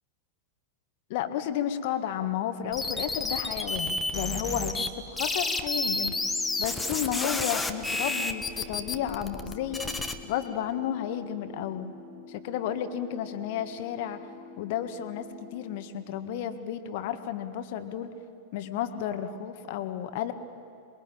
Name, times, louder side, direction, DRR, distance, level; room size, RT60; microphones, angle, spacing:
voice 1, 1.1-6.2 6.6-9.9 10.2-11.9 12.3-14.3 14.6-18.1 18.5-20.3, left 10 dB, 50° left, 9 dB, 1.7 m, -32 dB
sound 1, 2.7-4.9 5.2-10.1, left 2 dB, 10° left, 1.6 m, -30 dB
sound 2, 5.7-15.7, left 4 dB, 85° right, 4.7 m, -47 dB
27.0 x 21.5 x 9.1 m, 2.4 s
figure-of-eight pair, 90°, 0 cm